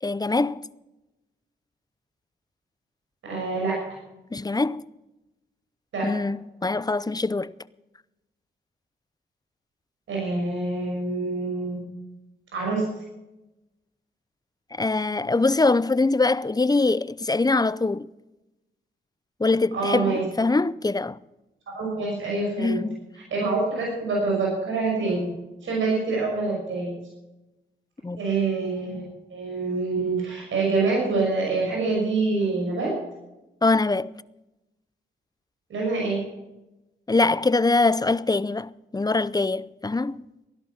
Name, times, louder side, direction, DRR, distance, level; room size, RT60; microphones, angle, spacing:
voice 1, 0.0-0.6 4.3-4.8 6.0-7.5 14.8-18.1 19.4-21.2 22.6-23.0 28.0-28.2 33.6-34.1 37.1-40.2, left 3 dB, 20° left, 0.6 m, -23 dB
voice 2, 3.2-3.8 5.9-6.1 10.1-11.8 12.5-12.9 19.7-20.2 21.7-22.8 23.3-25.3 25.6-26.9 28.2-29.0 29.3-32.9 35.7-36.2, right 3 dB, 85° right, 6.1 m, -26 dB
16.0 x 11.5 x 5.9 m
cardioid pair, 55°, 20 cm